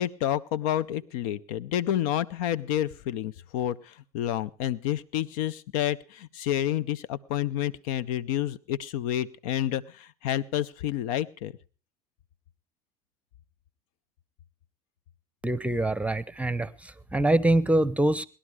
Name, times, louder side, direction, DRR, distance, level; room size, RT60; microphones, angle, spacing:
voice 1, 0.0-11.5, left 12 dB, 75° left, 0.7 m, -29 dB
voice 2, 15.4-18.3, right 1 dB, 5° right, 0.8 m, -24 dB
19.5 x 11.5 x 4.9 m
hypercardioid pair, 75°, 18 cm